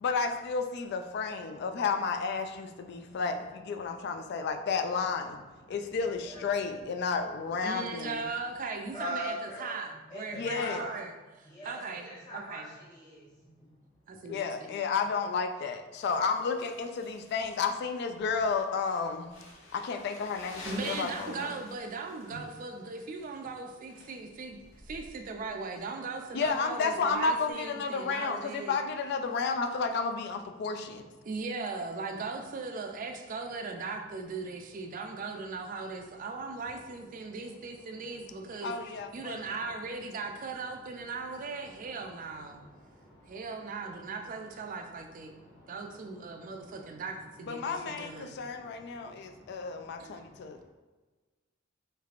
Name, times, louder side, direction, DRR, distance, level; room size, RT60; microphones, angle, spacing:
voice 1, 0.0-5.4 5.7-8.3 10.3-10.9 14.3-19.3 19.7-21.5 26.3-31.0 38.6-39.4 47.5-50.6, left 5 dB, 55° left, 7 dB, 0.3 m, -32 dB
voice 2, 5.6-6.0 6.3-6.5 8.9-9.8 10.1-11.0 11.4-13.3 13.5-13.6 36.6-36.7 37.2-37.4 37.8-38.2 38.5-39.4 41.1-41.4 41.8-44.0 44.8-47.0 47.6-50.6, equal, 20° left, -9 dB, 1.0 m, -45 dB
voice 3, 7.6-12.7 14.1-14.7 20.7-28.7 31.2-38.7 39.1-42.6 43.3-45.3 45.7-48.4 50.0-50.2, right 4 dB, 45° right, 4 dB, 0.4 m, -39 dB
Crumpling crinkling, 16.0-27.5, left 1 dB, 80° left, 0.9 m, -51 dB
3.2 x 3.1 x 2.4 m, 1.3 s
head